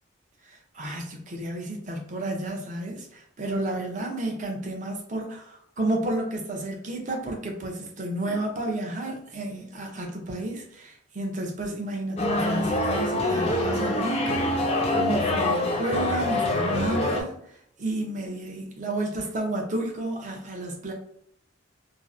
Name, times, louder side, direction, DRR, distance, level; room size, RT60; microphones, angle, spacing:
voice 1, 0.7-14.7 14.9-17.3 17.8-20.9, right 1 dB, 40° right, 1 dB, 0.5 m, -31 dB
sound 1, 12.2-17.2, left 1 dB, 30° left, 0.3 m, -25 dB
2.5 x 2.0 x 2.4 m, 0.70 s
head